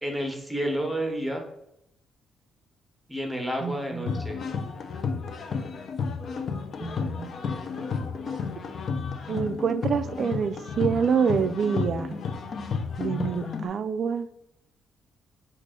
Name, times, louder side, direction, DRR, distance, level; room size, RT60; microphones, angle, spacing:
voice 1, 0.0-1.4 3.1-4.4, equal, 5° right, 2 dB, 0.9 m, -30 dB
voice 2, 3.6-4.2 6.8-7.4 9.3-12.1 13.0-14.3, right 6 dB, 55° right, 12 dB, 0.3 m, -27 dB
sound 1, 4.1-13.7, left 5 dB, 55° left, 0.4 m, -32 dB
4.8 x 2.5 x 3.7 m, 0.80 s
cardioid pair, 90°, 0 cm